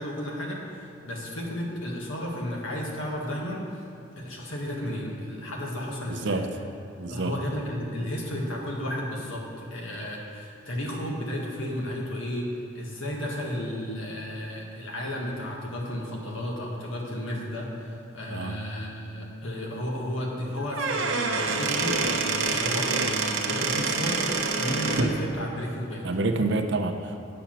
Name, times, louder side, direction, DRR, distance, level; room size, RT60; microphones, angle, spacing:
voice 1, 0.0-3.8 4.2-6.4 7.1-26.1, equal, 85° left, -1 dB, 1.7 m, -33 dB
voice 2, 6.1-6.5 7.0-7.3 18.3-18.6 26.0-27.3, right 2 dB, 60° right, 6 dB, 0.6 m, -28 dB
Squeak / Wood, 20.6-25.2, right 4 dB, 85° right, 0.9 m, -26 dB
8.5 x 7.0 x 5.9 m, 2.5 s
head